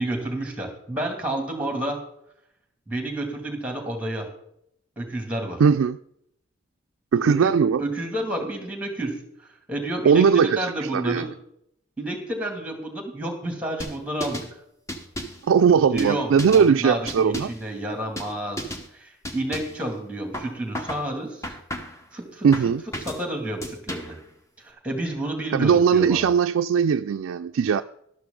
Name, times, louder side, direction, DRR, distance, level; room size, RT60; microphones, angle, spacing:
voice 1, 0.0-2.0 2.9-4.3 5.0-5.6 7.2-7.5 7.8-11.3 12.0-14.5 15.9-21.5 22.1-22.5 23.0-24.2 24.6-26.3, right 1 dB, 5° right, 2.3 m, -30 dB
voice 2, 5.6-6.0 7.1-7.8 10.0-11.2 15.4-17.5 22.4-22.8 25.5-27.8, right 6 dB, 75° right, 0.3 m, -19 dB
sound 1, 13.8-14.5 14.9-15.4 16.0-16.7 17.1-17.6 18.2-18.3 18.6-18.9 19.2-19.8 20.3-21.1 21.4-22.0 22.5-23.2 23.6-24.2, equal, 15° left, 1.1 m, -34 dB
12.5 x 12.0 x 3.8 m
head